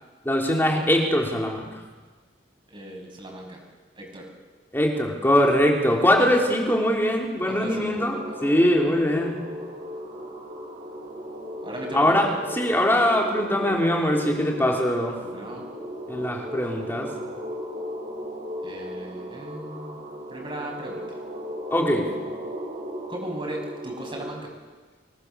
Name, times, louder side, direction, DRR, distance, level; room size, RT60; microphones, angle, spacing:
voice 1, 0.3-1.7 4.7-8.1 8.4-9.4 11.9-12.3 12.5-15.2 16.1-17.1 21.7-22.1, left 1 dB, 10° left, 0 dB, 3.6 m, -22 dB
voice 2, 2.7-3.6 4.0-4.3 7.4-8.0 11.6-12.3 15.2-15.6 18.6-20.0 20.3-21.0 23.1-24.5, right 1 dB, 25° right, 0 dB, 6.5 m, -37 dB
sound 1, 7.4-24.4, equal, 50° right, 6.6 m, -36 dB
26.0 x 20.5 x 7.0 m, 1.4 s
head